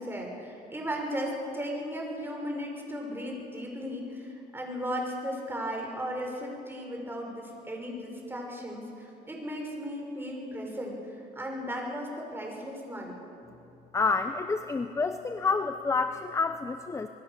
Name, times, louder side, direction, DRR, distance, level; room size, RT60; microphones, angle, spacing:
voice 1, 0.0-11.0 11.3-13.2, equal, 15° right, 0 dB, 6.4 m, -36 dB
voice 2, 13.9-17.1, left 4 dB, 15° left, 9 dB, 0.8 m, -28 dB
26.5 x 20.5 x 6.8 m, 2.8 s
cardioid pair, 110°, 17 cm